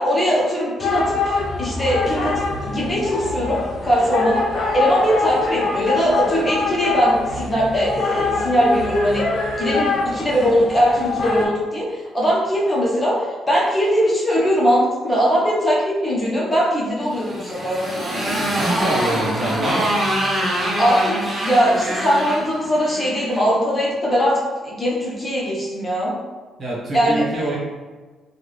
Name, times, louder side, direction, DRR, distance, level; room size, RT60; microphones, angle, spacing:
voice 1, 0.0-4.4 4.7-9.3 9.6-17.9 20.8-24.4 24.6-26.1 26.9-27.2, equal, 25° left, -5 dB, 1.0 m, -20 dB
sound 1, 0.8-11.5, left 3 dB, 60° left, 0.8 m, -24 dB
Motorcycle, 17.1-23.5, right 1 dB, 20° right, 1.1 m, -24 dB
voice 2, 18.5-19.9 26.6-27.6, right 2 dB, 40° right, -6 dB, 1.4 m, -25 dB
3.6 x 2.4 x 3.2 m, 1.3 s
cardioid pair, 90°, 0 cm